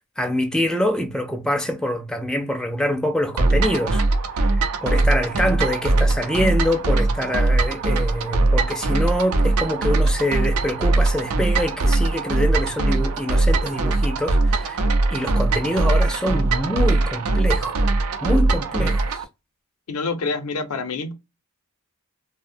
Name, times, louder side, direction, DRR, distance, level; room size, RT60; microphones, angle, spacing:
voice 1, 0.2-4.0 4.4-14.8 15.1-17.9 18.2-19.2, equal, 5° left, 0.3 m, -25 dB
sound 1, 3.4-19.2, right 2 dB, 80° right, 0.5 m, -21 dB
voice 2, 19.9-21.1, left 4 dB, 75° left, 0.5 m, -27 dB
2.6 x 2.0 x 2.5 m
head